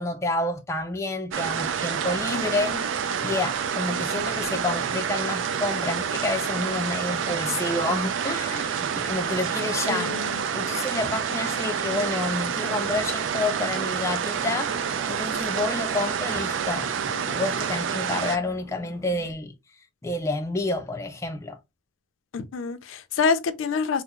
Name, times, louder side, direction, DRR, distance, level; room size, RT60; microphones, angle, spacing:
voice 1, 0.0-2.8 3.2-10.1 10.5-14.8 15.1-19.5 20.0-21.6, left 2 dB, 15° left, 0.3 m, -29 dB
sound 1, 1.3-18.4, right 7 dB, 75° right, 0.4 m, -28 dB
voice 2, 2.3-2.8 9.9-10.4 22.3-24.0, left 5 dB, 85° left, 0.4 m, -27 dB
sound 2, 12.7-19.3, left 3 dB, 5° right, 0.9 m, -48 dB
3.4 x 2.0 x 2.9 m
head